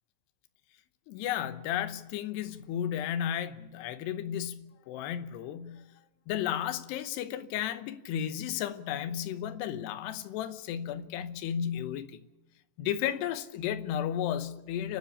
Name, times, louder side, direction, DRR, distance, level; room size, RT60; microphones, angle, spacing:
voice 1, 1.1-5.8 6.3-12.1 12.8-15.0, left 10 dB, 80° left, 3.1 m, -33 dB
30.0 x 10.5 x 8.5 m
omnidirectional pair, 4.8 m